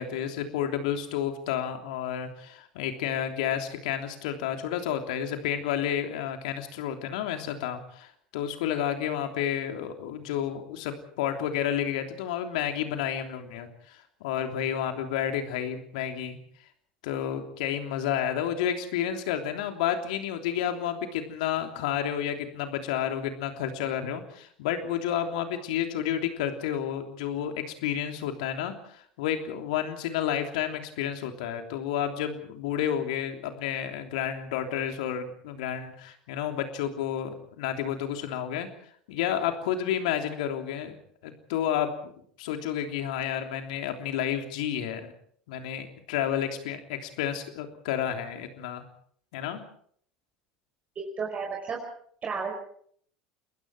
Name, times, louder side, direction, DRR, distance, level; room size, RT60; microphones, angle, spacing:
voice 1, 0.0-16.4 17.0-38.7 39.1-41.0 41.2-42.1 42.4-45.1 45.5-48.8 49.3-49.6, left 9 dB, 65° left, 5 dB, 3.3 m, -31 dB
voice 2, 51.0-51.8 52.2-52.5, right 5 dB, 35° right, 0 dB, 5.2 m, -32 dB
29.5 x 21.5 x 4.8 m, 0.62 s
figure-of-eight pair, 75°, 4 cm